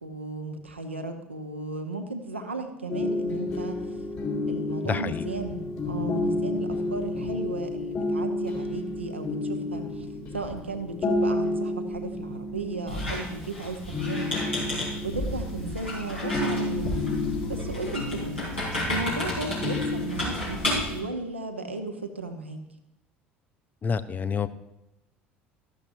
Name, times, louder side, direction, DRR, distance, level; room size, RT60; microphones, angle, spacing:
voice 1, 0.0-3.8 4.5-10.1 10.3-14.4 15.0-17.0 17.5-18.4 18.9-22.6, right 2 dB, 85° right, 5 dB, 0.8 m, -35 dB
sound 1, 2.9-21.0, left 2 dB, 50° left, 3.5 m, -31 dB
voice 2, 4.8-5.2 23.8-24.5, left 6 dB, 30° left, 13 dB, 0.5 m, -28 dB
Squeak, 12.9-21.0, left 1 dB, 85° left, 4.0 m, -32 dB
13.5 x 11.5 x 2.7 m, 0.91 s
figure-of-eight pair, 65°, 6 cm